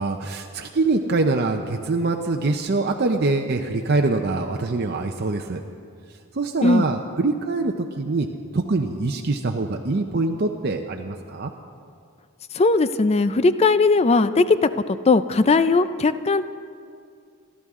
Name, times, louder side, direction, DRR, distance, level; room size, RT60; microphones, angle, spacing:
voice 1, 0.0-5.6 6.3-8.3 8.5-11.5, right 3 dB, 50° right, 3 dB, 0.6 m, -24 dB
voice 2, 12.5-16.4, left 3 dB, 30° left, 13 dB, 0.4 m, -18 dB
27.5 x 12.5 x 3.7 m, 2.3 s
head